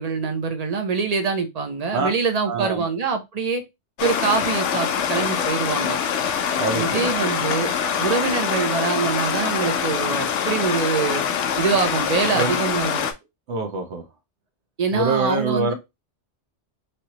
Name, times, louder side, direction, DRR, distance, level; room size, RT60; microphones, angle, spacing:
voice 1, 0.0-3.6 4.0-6.0 6.7-7.7 8.0-11.2 11.6-13.0 14.8-15.7, right 5 dB, 40° right, 0.7 m, -24 dB
voice 2, 2.5-2.8 6.6-7.1 12.3-12.6 13.5-14.0 14.9-15.7, right 3 dB, 70° right, 1.1 m, -24 dB
Stream, 4.0-13.1, left 7 dB, 85° left, 0.9 m, -24 dB
3.2 x 2.8 x 2.9 m
omnidirectional pair, 1.2 m